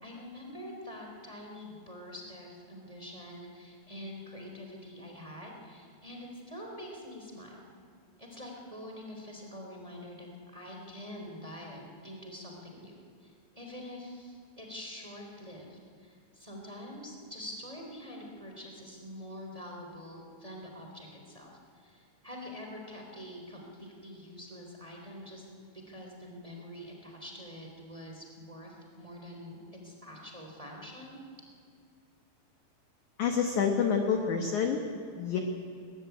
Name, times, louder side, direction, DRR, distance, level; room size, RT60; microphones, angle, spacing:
voice 1, 0.0-7.6 8.2-25.5 25.7-31.2, left 1 dB, 10° right, 1 dB, 3.0 m, -45 dB
voice 2, 33.2-34.8 35.2-35.4, left 6 dB, 65° left, 4 dB, 2.0 m, -27 dB
21.5 x 19.5 x 9.3 m, 2.2 s
omnidirectional pair, 5.2 m